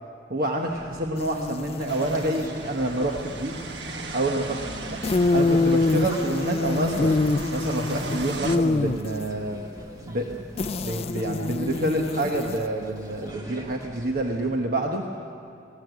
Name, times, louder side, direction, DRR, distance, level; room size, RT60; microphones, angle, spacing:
voice 1, 0.3-3.6 4.1-4.6 4.9-5.0 5.3-7.1 7.5-9.6 10.0-15.1, right 1 dB, 55° right, 2 dB, 1.2 m, -28 dB
sound 1, 0.6-14.5, equal, 20° right, 2.0 m, -43 dB
sound 2, 1.2-2.5 5.0-9.3 10.6-12.8, left 3 dB, 35° left, 0.4 m, -25 dB
sound 3, 1.9-8.6, right 3 dB, 70° right, 1.4 m, -37 dB
18.5 x 18.0 x 8.2 m, 2.6 s
head